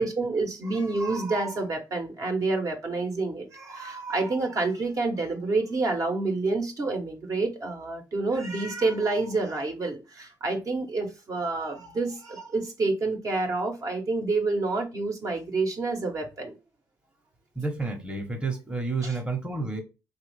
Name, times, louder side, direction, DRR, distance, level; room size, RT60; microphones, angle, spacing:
voice 1, 0.0-16.5 19.0-19.2, right 3 dB, 45° right, 0.8 m, -28 dB
voice 2, 17.6-19.8, right 3 dB, 10° right, 0.8 m, -30 dB
3.1 x 2.3 x 3.2 m
cardioid pair, 70°, 8 cm